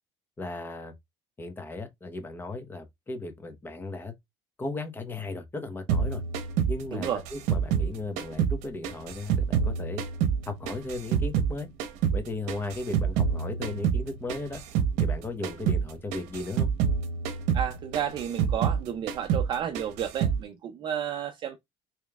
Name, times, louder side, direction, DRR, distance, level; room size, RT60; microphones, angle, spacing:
voice 1, 0.4-0.9 1.4-4.1 4.6-6.2 6.7-10.0 10.5-11.7 12.1-14.6 15.0-16.7, left 2 dB, 15° left, 0.9 m, -36 dB
sound 1, 5.9-8.6 8.8-11.5 11.8-15.2 15.4-15.8 16.1-18.8 19.1-19.5 19.7-20.4, right 7 dB, 85° right, 0.8 m, -27 dB
voice 2, 6.9-7.2 17.5-21.6, right 9 dB, 40° right, 0.5 m, -31 dB
5.0 x 3.1 x 2.3 m
cardioid pair, 145°, 12 cm